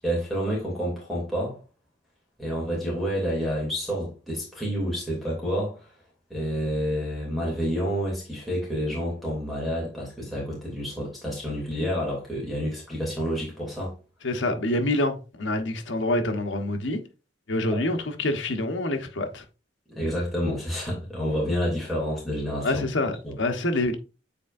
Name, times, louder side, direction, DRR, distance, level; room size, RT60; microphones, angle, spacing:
voice 1, 0.0-1.6 2.4-5.9 6.3-13.9 17.7-17.8 19.9-22.9 23.2-23.3, equal, ahead, 2.8 m, -29 dB
voice 2, 14.2-17.0 17.5-19.4 22.6-24.0, left 1 dB, 85° left, 1.2 m, -26 dB
8.3 x 4.5 x 2.6 m
head